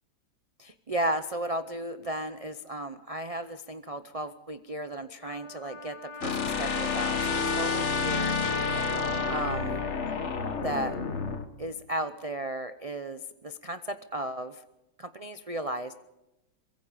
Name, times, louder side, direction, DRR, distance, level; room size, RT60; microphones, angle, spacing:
voice 1, 0.6-8.4 9.3-9.8 10.6-11.0 11.6-14.6 15.0-16.0, right 1 dB, 60° right, 9 dB, 0.3 m, -34 dB
Trumpet, 5.2-10.0, left 3 dB, 60° left, 2.2 m, -33 dB
sound 1, 6.2-11.5, left 5 dB, 45° left, 1.5 m, -31 dB
24.0 x 22.0 x 5.1 m, 0.96 s
omnidirectional pair, 1.9 m